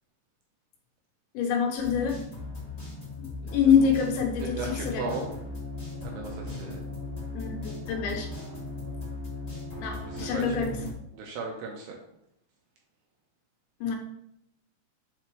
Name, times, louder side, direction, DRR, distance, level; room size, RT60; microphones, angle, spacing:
voice 1, 1.3-2.2 3.5-5.1 7.3-8.3 9.8-10.7 13.8-14.0, left 6 dB, 80° left, 2 dB, 3.3 m, -25 dB
sound 1, 1.8-10.9, left 3 dB, 20° left, 1.1 m, -37 dB
voice 2, 3.4-3.9 4.4-5.3 6.0-6.9 10.0-10.6 11.1-12.0, right 3 dB, 80° right, 0 dB, 2.6 m, -37 dB
7.2 x 4.2 x 3.1 m, 0.76 s
omnidirectional pair, 5.2 m